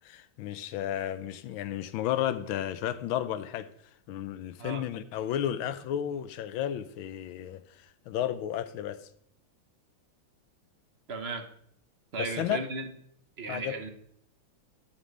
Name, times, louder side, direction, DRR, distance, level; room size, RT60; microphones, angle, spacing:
voice 1, 0.0-3.7 4.1-9.1 12.2-12.6 13.5-13.7, left 11 dB, 90° left, 1.5 m, -33 dB
voice 2, 11.1-11.5 12.1-12.9 13.4-13.9, right 3 dB, 45° right, 0.9 m, -35 dB
12.5 x 7.4 x 3.3 m
omnidirectional pair, 2.2 m